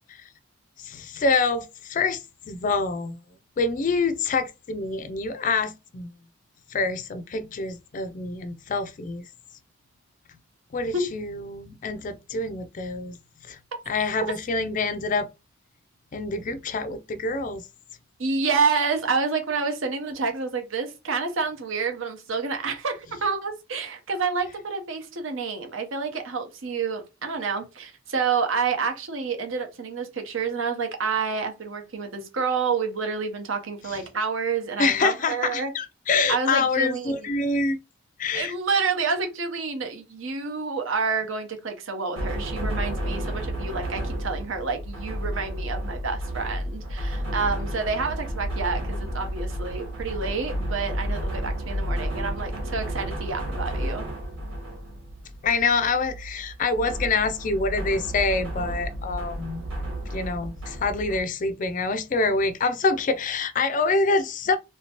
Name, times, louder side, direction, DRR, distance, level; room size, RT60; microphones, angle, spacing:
voice 1, 0.8-3.2 3.6-6.1 6.7-9.2 10.7-13.2 13.5-13.6 13.9-15.3 16.1-17.6 33.9-34.0 34.8-37.8 38.2-38.5 55.4-59.6 60.1-64.6, left 3 dB, 40° left, 0.3 m, -26 dB
voice 2, 18.2-35.7 36.3-37.3 38.3-54.1, right 4 dB, 70° right, 0.8 m, -28 dB
sound 1, 42.1-61.2, equal, 90° right, 1.5 m, -32 dB
3.2 x 2.8 x 2.9 m
head